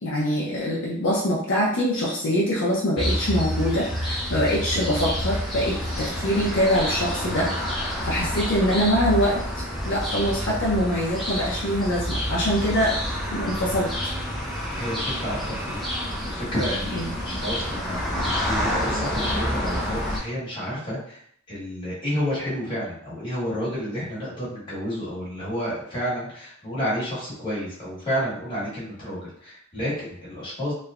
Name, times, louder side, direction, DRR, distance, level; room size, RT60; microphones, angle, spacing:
voice 1, 0.0-7.5 8.0-9.4 9.9-13.0 13.3-13.9 16.9-17.1, equal, 60° left, -5 dB, 0.5 m, -24 dB
sound 1, 3.0-20.2, equal, ahead, 0.4 m, -28 dB
voice 2, 14.7-15.8 16.2-18.0 18.5-21.2 21.5-30.7, equal, 25° left, -9 dB, 1.3 m, -30 dB
3.1 x 2.0 x 2.3 m, 0.64 s
head